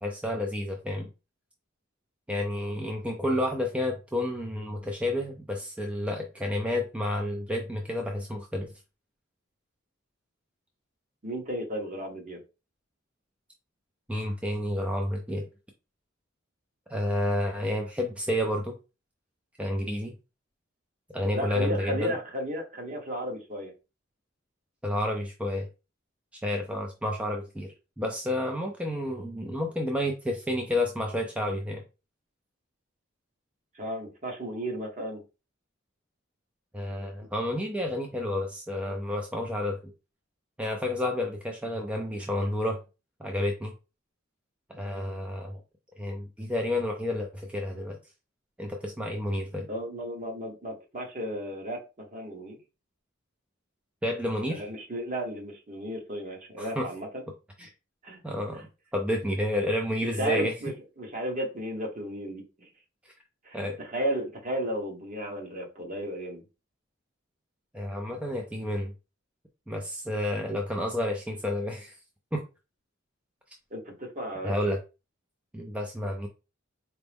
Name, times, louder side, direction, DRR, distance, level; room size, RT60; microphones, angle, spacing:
voice 1, 0.0-1.1 2.3-8.7 14.1-15.5 16.9-18.8 19.6-20.1 21.1-22.2 24.8-25.7 26.4-31.8 36.7-39.9 40.6-42.8 43.2-43.7 44.7-45.6 46.0-48.0 48.6-49.7 54.0-54.7 56.6-56.9 57.6-57.7 58.2-58.7 58.9-60.5 63.5-63.8 67.7-68.9 69.7-72.0 72.3-72.4 74.4-74.8 75.5-76.3, left 1 dB, 5° right, 1 dB, 0.4 m, -30 dB
voice 2, 11.2-12.4 21.3-23.7 33.7-35.2 49.7-52.6 54.5-57.2 58.0-58.2 58.5-58.6 60.0-60.7 61.0-62.7 63.4-66.4 73.7-74.6, equal, 40° right, 1 dB, 1.1 m, -34 dB
4.3 x 2.0 x 3.4 m, 0.30 s
head